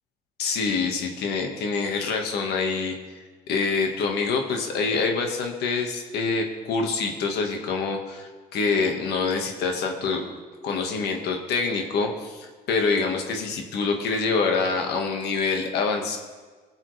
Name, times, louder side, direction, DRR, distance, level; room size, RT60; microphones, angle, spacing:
voice 1, 0.4-2.9 3.5-10.2 10.6-16.2, left 4 dB, 75° left, 3 dB, 1.5 m, -26 dB
18.0 x 7.3 x 3.3 m, 1.4 s
cardioid pair, 110°, 17 cm